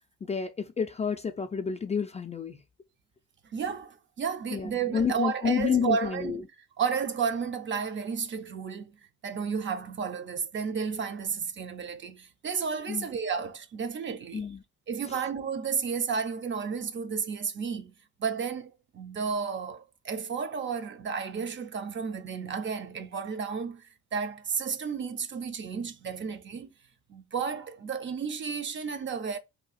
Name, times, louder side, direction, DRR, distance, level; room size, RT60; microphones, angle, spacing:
voice 1, 0.2-2.6 4.5-6.4 12.9-13.1 14.3-14.6, left 6 dB, 25° left, 0.3 m, -29 dB
voice 2, 3.5-6.5 6.8-9.0 9.2-14.5 14.9-17.9 18.2-26.7 27.1-29.4, right 6 dB, 40° right, 0.5 m, -32 dB
2.7 x 2.3 x 4.0 m
cardioid pair, 90°, 30 cm